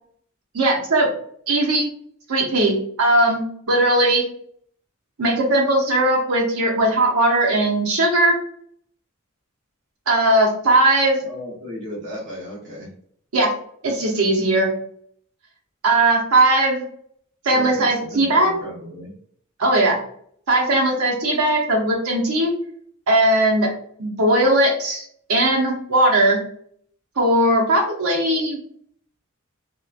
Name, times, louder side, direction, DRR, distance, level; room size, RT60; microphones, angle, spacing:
voice 1, 0.5-1.1 1.5-1.9 2.3-4.2 5.2-8.4 10.1-11.2 13.3-13.5 13.8-14.7 15.8-16.8 17.5-18.5 19.6-20.0 20.5-22.5 23.1-23.7 24.0-26.4 27.2-28.6, right 1 dB, 80° right, 0 dB, 0.7 m, -18 dB
voice 2, 11.2-12.9 17.4-19.1, equal, 60° right, -4 dB, 0.9 m, -34 dB
3.0 x 2.1 x 2.4 m, 0.63 s
head